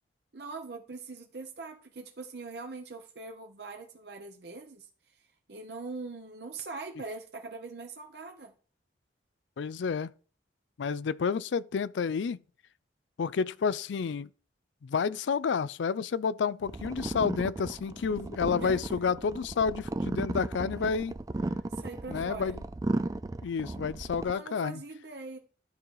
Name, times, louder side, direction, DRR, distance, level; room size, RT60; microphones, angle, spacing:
voice 1, 0.3-4.9 5.5-8.5 18.5-18.8 21.7-22.5 24.3-25.4, right 3 dB, 65° right, 0.9 m, -42 dB
voice 2, 9.6-10.1 10.8-12.4 13.2-14.3 14.8-21.1 22.1-22.6 23.4-24.8, left 6 dB, 85° left, 0.4 m, -30 dB
sound 1, 16.6-24.3, right 2 dB, 20° right, 0.3 m, -35 dB
11.5 x 3.9 x 4.7 m
head